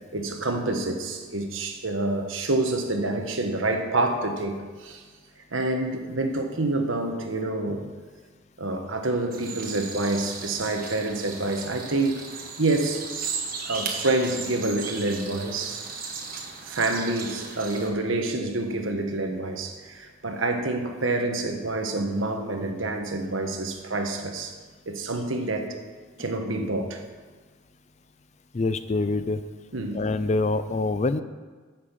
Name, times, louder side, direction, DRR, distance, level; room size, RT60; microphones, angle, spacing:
voice 1, 0.1-5.0 5.5-7.8 8.6-12.2 12.6-13.1 13.7-15.9 16.6-24.6 24.9-25.8 26.2-27.0 29.7-30.0, right 2 dB, 75° right, 4 dB, 1.4 m, -27 dB
sound 1, 9.3-17.9, right 5 dB, 45° right, 1.5 m, -36 dB
voice 2, 28.5-29.4 29.9-31.2, left 3 dB, 35° left, 12 dB, 0.4 m, -25 dB
10.5 x 7.4 x 7.4 m, 1.4 s
head